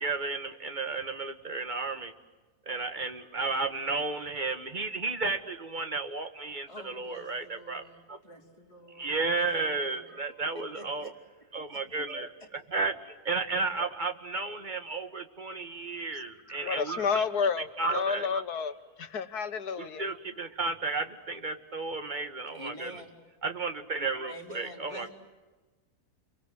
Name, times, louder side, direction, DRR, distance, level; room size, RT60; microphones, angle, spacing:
voice 1, 0.0-2.1 2.7-7.8 8.1-8.2 9.0-11.1 11.5-17.2 17.8-18.4 19.8-23.0 23.4-25.1, right 3 dB, 30° right, 8 dB, 1.7 m, -33 dB
voice 2, 6.7-10.2 10.5-11.1 22.5-23.1 24.3-25.1, equal, 20° left, -1 dB, 4.0 m, -48 dB
voice 3, 16.6-20.0, left 6 dB, 80° left, 10 dB, 1.8 m, -31 dB
29.0 x 23.0 x 7.8 m, 1.2 s
omnidirectional pair, 1.6 m